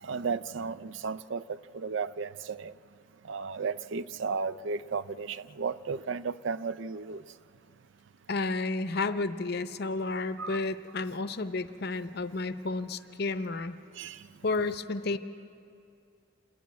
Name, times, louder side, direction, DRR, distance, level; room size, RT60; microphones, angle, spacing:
voice 1, 0.0-2.7 3.2-7.2 10.4-10.6 13.9-14.3, right 5 dB, 65° right, 15 dB, 0.4 m, -34 dB
voice 2, 8.3-13.7 14.4-15.2, left 3 dB, 50° left, 11 dB, 0.6 m, -31 dB
27.0 x 10.5 x 9.3 m, 2.5 s
head